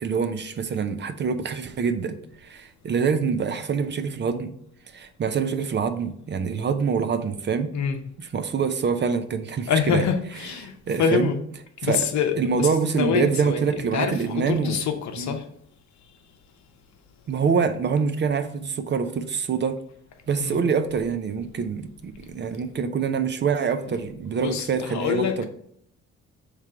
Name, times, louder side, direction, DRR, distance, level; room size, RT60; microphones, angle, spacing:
voice 1, 0.0-4.5 4.9-7.7 8.2-10.1 10.9-11.3 11.8-12.1 12.4-14.8 15.2-15.4 17.3-19.8 20.3-25.5, right 6 dB, 35° right, 0.4 m, -25 dB
voice 2, 9.7-10.7 11.0-11.4 11.8-12.7 13.0-13.6 13.9-14.2 14.5-15.4 20.4-20.6 23.9-24.0 24.3-25.5, left 6 dB, 65° left, 0.8 m, -25 dB
3.6 x 3.2 x 4.5 m
cardioid pair, 90°, 30 cm